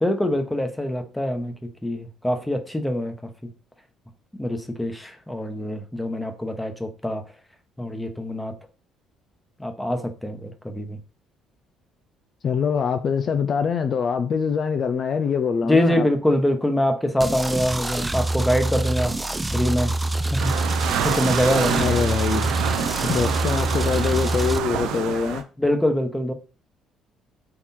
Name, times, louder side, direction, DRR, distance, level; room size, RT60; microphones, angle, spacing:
voice 1, 0.0-3.5 4.4-7.2 7.8-8.5 9.6-11.0 15.6-19.2 19.5-19.9 20.3-20.5 21.0-22.0 25.6-26.3, left 1 dB, 10° left, 1.0 m, -24 dB
voice 2, 12.4-16.1 21.8-22.5 23.1-25.4, left 6 dB, 50° left, 0.4 m, -24 dB
sound 1, 17.2-24.6, right 2 dB, 15° right, 0.4 m, -26 dB
sound 2, 20.4-25.4, right 8 dB, 80° right, 0.5 m, -27 dB
3.8 x 3.0 x 4.2 m
supercardioid pair, 70°, 0 cm